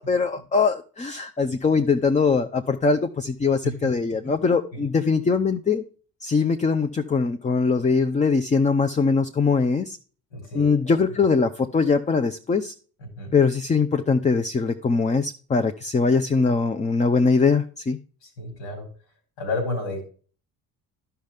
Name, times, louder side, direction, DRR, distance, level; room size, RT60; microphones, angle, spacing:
voice 1, 0.0-5.8 6.2-10.0 10.5-12.7 13.3-18.0, left 4 dB, 15° left, 8 dB, 0.5 m, -22 dB
voice 2, 10.3-11.0 13.2-13.4 18.2-18.9 19.4-20.0, left 2 dB, 75° left, 4 dB, 3.5 m, -31 dB
11.5 x 5.6 x 3.4 m, 0.41 s
supercardioid pair, 60°, 46 cm